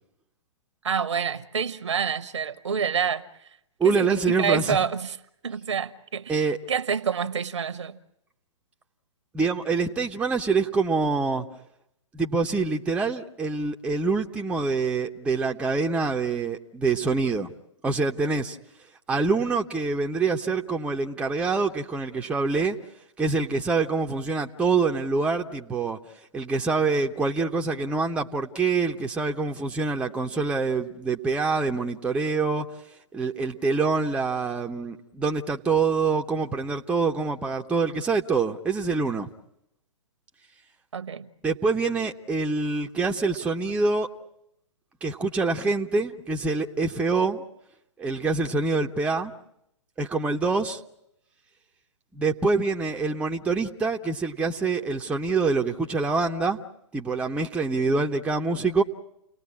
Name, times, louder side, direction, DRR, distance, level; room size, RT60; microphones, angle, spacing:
voice 1, 0.8-3.2 3.8-5.2 5.4-8.0 40.9-41.3, right 7 dB, 70° right, 13 dB, 1.2 m, -27 dB
voice 2, 3.8-4.8 6.3-6.6 9.3-11.5 12.1-17.5 17.8-18.6 19.1-22.8 23.2-26.0 26.3-32.7 33.1-39.3 41.4-44.1 45.0-47.4 48.0-49.3 50.0-50.8 52.1-56.6 56.9-58.8, right 4 dB, 5° right, 2 dB, 0.9 m, -25 dB
29.5 x 19.0 x 8.6 m, 0.82 s
figure-of-eight pair, 120°, 16 cm